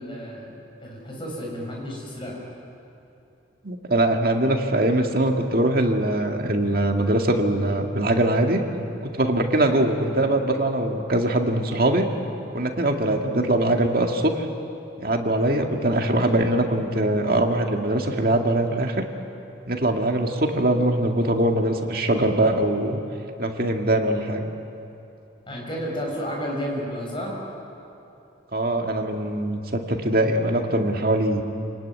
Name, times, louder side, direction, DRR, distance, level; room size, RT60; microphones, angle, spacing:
voice 1, 0.0-2.4 25.5-27.4, equal, 25° left, -2 dB, 6.5 m, -32 dB
voice 2, 3.6-8.6 9.0-12.1 12.5-14.5 15.0-19.0 19.7-23.0 23.4-24.4 28.5-31.4, right 1 dB, 50° right, 3 dB, 2.1 m, -22 dB
28.0 x 19.0 x 9.6 m, 2.8 s
head